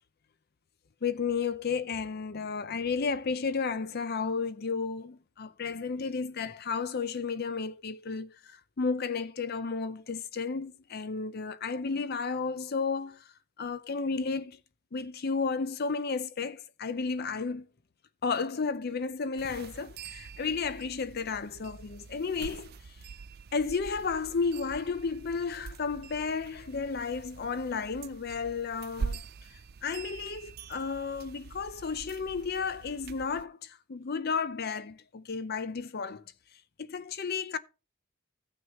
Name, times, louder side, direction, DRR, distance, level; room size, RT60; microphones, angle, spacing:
voice 1, 1.0-13.2 13.6-14.6 14.9-17.7 18.2-22.7 23.5-29.2 29.8-36.2 36.8-37.6, left 5 dB, 50° left, 0.6 m, -33 dB
sound 1, 19.4-33.5, right 5 dB, 50° right, 0.4 m, -44 dB
15.5 x 6.3 x 2.9 m
head